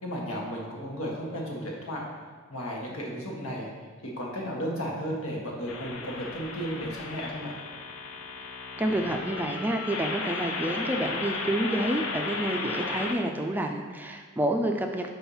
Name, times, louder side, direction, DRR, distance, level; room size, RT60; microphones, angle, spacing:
voice 1, 0.0-2.0 2.5-3.7 4.0-7.6, equal, 90° left, -2 dB, 1.5 m, -34 dB
sound 1, 5.7-13.1, left 3 dB, 75° left, 0.7 m, -35 dB
voice 2, 8.8-15.1, right 1 dB, 10° right, 3 dB, 0.3 m, -29 dB
5.5 x 4.4 x 5.5 m, 1.5 s
head